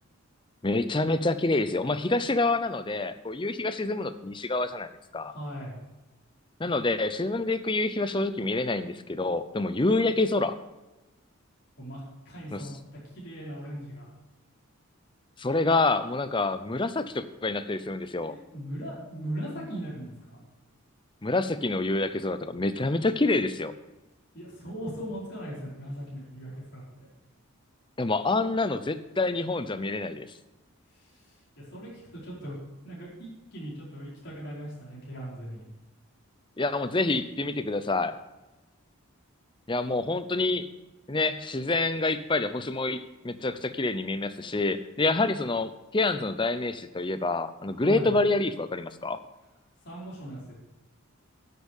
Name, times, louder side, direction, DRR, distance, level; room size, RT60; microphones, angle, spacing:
voice 1, 0.6-5.3 6.6-10.6 12.5-12.6 15.4-18.3 21.2-23.7 28.0-30.3 36.6-38.2 39.7-40.7 41.1-49.2, left 2 dB, 20° left, 12 dB, 0.6 m, -27 dB
voice 2, 5.2-5.8 11.8-12.7 13.0-14.1 18.3-20.4 24.3-27.1 30.9-32.5 32.8-35.7 47.8-48.1 49.8-50.5, equal, 50° left, -7 dB, 4.8 m, -39 dB
11.0 x 8.3 x 6.5 m, 1.1 s
head